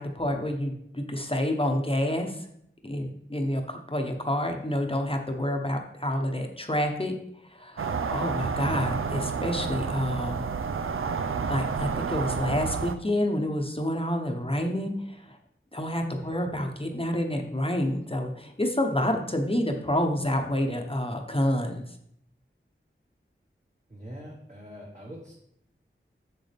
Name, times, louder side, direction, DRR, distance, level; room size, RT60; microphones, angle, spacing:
voice 1, 0.0-2.5 2.8-7.1 7.5-10.4 11.5-15.4 15.7-21.8, left 1 dB, 25° left, 3 dB, 0.9 m, -28 dB
sound 1, 7.8-12.9, right 5 dB, 75° right, 0.4 m, -30 dB
voice 2, 23.9-25.3, equal, 35° right, -4 dB, 1.6 m, -43 dB
7.0 x 6.5 x 3.5 m, 0.72 s
wide cardioid pair, 40°, 21 cm